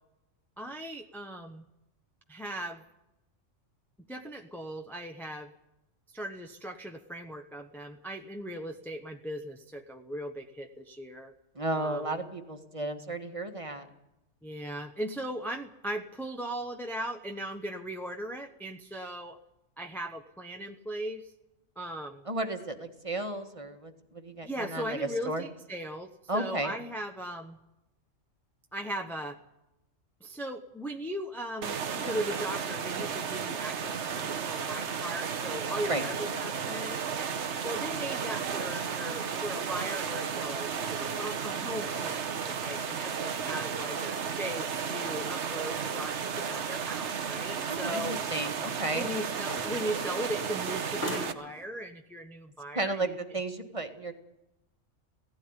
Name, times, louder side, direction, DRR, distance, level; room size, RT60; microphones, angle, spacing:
voice 1, 0.6-1.6 2.3-2.8 4.1-5.5 6.1-11.3 11.8-12.2 14.4-19.4 19.8-21.3 21.8-22.2 24.4-27.6 28.7-29.4 30.2-37.3 37.6-48.1 48.9-53.0, equal, ahead, 4 dB, 0.9 m, -38 dB
voice 2, 11.5-13.9 22.2-25.4 26.3-26.7 35.8-36.0 47.7-49.1 52.7-54.1, right 2 dB, 25° right, 5 dB, 1.6 m, -33 dB
sound 1, 31.6-51.3, right 6 dB, 65° right, 1.3 m, -33 dB
sound 2, 32.2-51.7, left 1 dB, 70° left, 3.1 m, -49 dB
17.0 x 16.0 x 9.7 m, 0.91 s
omnidirectional pair, 1.3 m